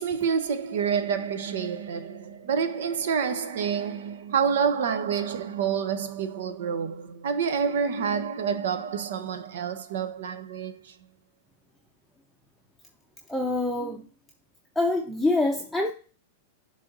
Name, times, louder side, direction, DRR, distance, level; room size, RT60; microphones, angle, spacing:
voice 1, 0.0-11.0, right 7 dB, 75° right, 0.9 m, -28 dB
voice 2, 13.3-14.0 14.8-15.9, left 2 dB, ahead, 0.7 m, -25 dB
7.6 x 3.4 x 3.9 m
hypercardioid pair, 130°, 0 cm